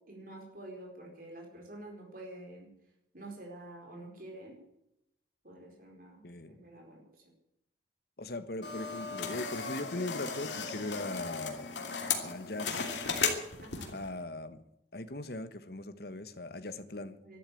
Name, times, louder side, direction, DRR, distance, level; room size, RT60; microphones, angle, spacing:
voice 1, 0.1-2.7 3.1-4.6 5.4-7.0 13.6-14.0 17.2-17.4, right 1 dB, 50° right, 0 dB, 4.6 m, -48 dB
voice 2, 6.2-6.6 8.2-11.7 12.2-12.8 13.9-14.6 14.9-17.1, left 2 dB, 55° left, 11 dB, 1.3 m, -39 dB
sound 1, 8.6-14.1, left 5 dB, 80° left, 2.9 m, -36 dB
13.0 x 13.0 x 8.5 m, 0.82 s
head